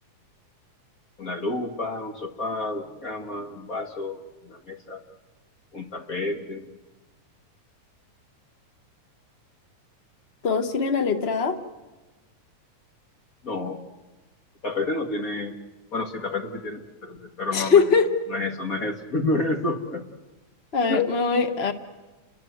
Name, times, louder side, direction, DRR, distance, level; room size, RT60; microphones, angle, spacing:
voice 1, 1.2-4.2 4.4-5.0 5.7-6.6 13.4-13.8 14.6-15.5 15.9-17.8 18.3-20.0 20.9-21.1 21.3-21.6, left 2 dB, 40° left, 4 dB, 1.3 m, -29 dB
voice 2, 10.4-11.6 17.5-18.1 20.7-21.7, left 5 dB, 80° left, 6 dB, 0.5 m, -21 dB
30.0 x 22.0 x 7.9 m, 1.1 s
omnidirectional pair, 3.5 m